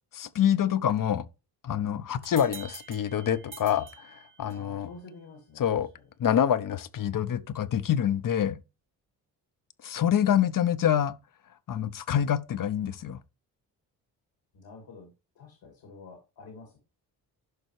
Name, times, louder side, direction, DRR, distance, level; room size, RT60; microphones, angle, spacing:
voice 1, 0.1-1.2 1.6-4.9 5.6-5.9 6.2-8.6 9.8-11.2 11.7-13.2, left 9 dB, 45° left, 0.8 m, -26 dB
sound 1, 2.2-4.8, right 5 dB, 30° right, 0.8 m, -47 dB
voice 2, 4.4-6.1 14.5-15.1 15.3-16.8, left 3 dB, 75° left, 2.5 m, -48 dB
11.0 x 5.4 x 3.2 m
supercardioid pair, 50°, 44 cm